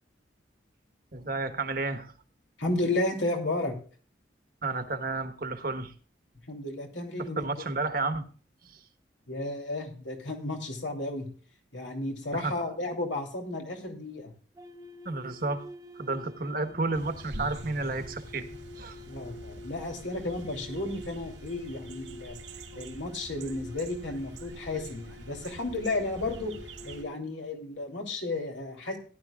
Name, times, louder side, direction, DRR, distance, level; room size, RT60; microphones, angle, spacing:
voice 1, 1.1-2.1 4.6-5.9 7.4-8.2 12.3-12.6 15.0-15.6 16.0-18.5 18.8-19.0, right 3 dB, 50° right, 8 dB, 1.2 m, -31 dB
voice 2, 2.6-3.7 6.5-7.6 9.3-11.3 11.7-14.3 19.0-22.4 22.7-26.5 26.8-29.0, left 2 dB, 80° left, 2 dB, 2.9 m, -33 dB
sound 1, 14.6-27.3, left 1 dB, 20° right, 0.9 m, -48 dB
sound 2, 16.9-27.0, right 1 dB, 85° right, 2.0 m, -45 dB
18.0 x 11.0 x 2.3 m, 0.40 s
head